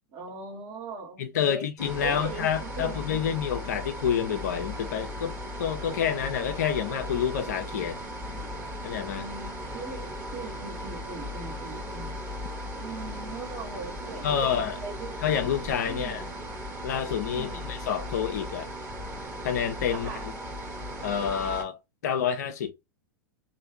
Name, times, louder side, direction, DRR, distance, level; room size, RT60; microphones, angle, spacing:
voice 1, 0.1-1.6 2.0-3.4 9.1-12.2 12.8-15.2 15.9-16.3 17.3-17.6 20.0-20.3, right 3 dB, 40° right, 1.5 m, -40 dB
voice 2, 1.2-8.0 8.8-9.3 14.2-14.8 15.2-16.2 16.8-18.7 19.4-20.3 21.0-21.8 22.0-22.7, left 8 dB, 55° left, 0.6 m, -28 dB
sound 1, 1.8-21.6, equal, 15° right, 1.3 m, -37 dB
3.3 x 2.6 x 2.8 m
figure-of-eight pair, 95°, 10 cm